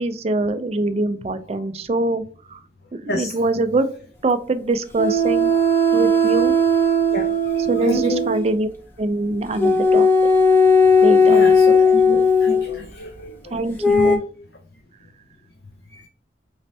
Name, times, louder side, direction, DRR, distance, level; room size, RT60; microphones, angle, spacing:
voice 1, 0.0-2.2 2.5-2.6 3.1-3.9 4.2-5.5 5.9-6.5 7.6-8.7 9.0-10.1 11.0-11.4 13.5-14.2, right 2 dB, 35° right, 9 dB, 0.4 m, -23 dB
sound 1, 5.0-8.5 9.6-12.7 13.8-14.2, left 2 dB, 10° left, 0.7 m, -16 dB
voice 2, 7.1-8.2 9.5-9.6 11.0-13.6 15.9-16.1, left 1 dB, 60° left, 2 dB, 0.6 m, -30 dB
4.2 x 3.1 x 2.7 m, 0.43 s
head